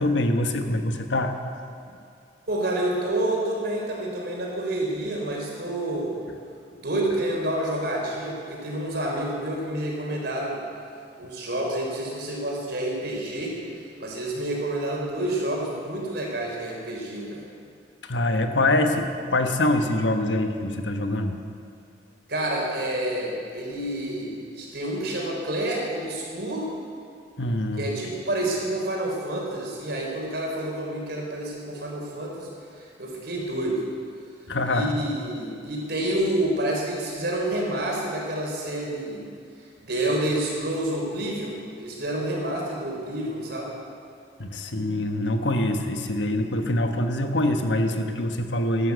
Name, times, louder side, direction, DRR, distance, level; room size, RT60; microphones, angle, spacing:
voice 1, 0.0-1.3 18.1-21.4 27.4-27.9 34.5-34.9 44.4-48.9, left 1 dB, 85° left, 6 dB, 1.4 m, -24 dB
voice 2, 2.5-6.2 6.8-10.6 11.2-17.4 22.3-26.7 27.8-33.8 34.7-39.3 39.6-43.7, right 1 dB, 60° right, -2 dB, 4.2 m, -29 dB
13.0 x 12.5 x 8.2 m, 2.5 s
head